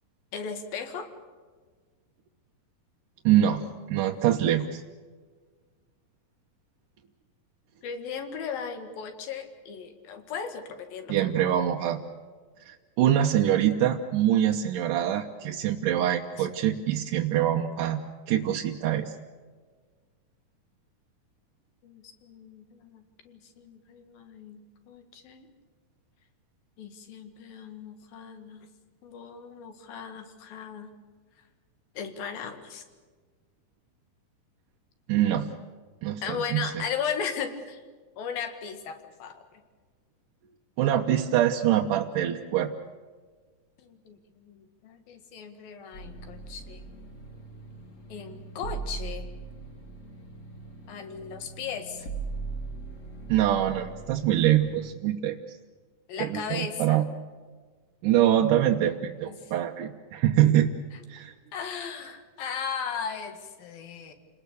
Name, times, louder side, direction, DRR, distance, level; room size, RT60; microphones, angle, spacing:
voice 1, 0.3-1.1 7.8-11.5 16.4-16.5 21.8-25.5 26.8-28.7 29.0-30.9 32.0-32.9 36.2-37.8 38.2-39.4 43.8-46.9 48.1-49.3 50.9-52.0 56.1-57.0 59.2-59.5 60.9-61.0 61.5-64.1, left 6 dB, 85° left, 7 dB, 3.8 m, -37 dB
voice 2, 3.3-4.8 11.1-12.0 12.7-18.0 18.3-19.1 35.1-35.5 36.0-36.8 40.8-42.7 53.3-55.4 56.2-57.0 58.0-60.7 61.1-61.3, right 11 dB, 75° right, 1 dB, 2.3 m, -24 dB
sound 1, 45.9-54.9, right 4 dB, 40° left, 1.2 m, -40 dB
29.0 x 20.0 x 6.9 m, 1.5 s
omnidirectional pair, 4.0 m